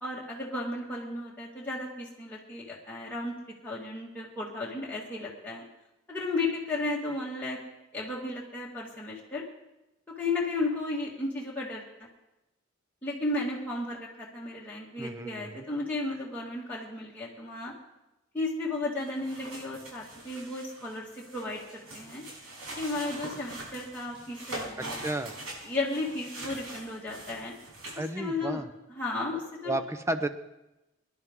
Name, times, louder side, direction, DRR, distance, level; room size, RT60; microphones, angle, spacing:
voice 1, 0.0-3.3 3.6-5.6 6.1-7.6 7.9-9.4 10.2-11.8 13.0-17.7 18.3-21.1 21.3-22.2 22.8-25.0 25.6-27.5 28.0-28.6 28.9-29.7, left 2 dB, 10° left, -6 dB, 1.9 m, -34 dB
voice 2, 15.0-15.6 24.8-25.3 28.0-28.7 29.6-30.3, right 2 dB, 15° right, 8 dB, 0.8 m, -32 dB
sound 1, 19.0-28.1, right 1 dB, 85° right, 6.5 m, -43 dB
24.5 x 11.0 x 3.7 m, 0.97 s
head